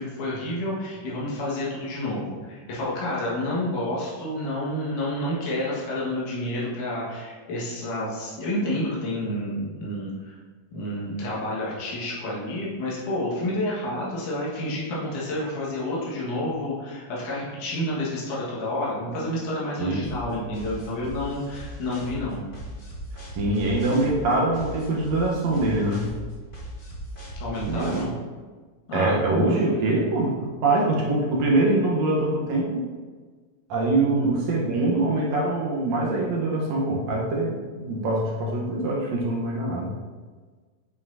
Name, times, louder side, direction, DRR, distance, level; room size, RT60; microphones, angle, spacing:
voice 1, 0.0-10.3 10.7-22.5 27.4-28.1 28.9-29.7 34.1-34.3, left 1 dB, 80° left, -7 dB, 3.2 m, -29 dB
sound 1, 20.0-28.0, equal, 45° left, 0.6 m, -38 dB
voice 2, 23.3-26.1 27.7-28.1 28.9-32.9 33.7-39.9, right 2 dB, 70° right, -3 dB, 2.2 m, -24 dB
9.6 x 5.6 x 2.7 m, 1.4 s
omnidirectional pair, 3.4 m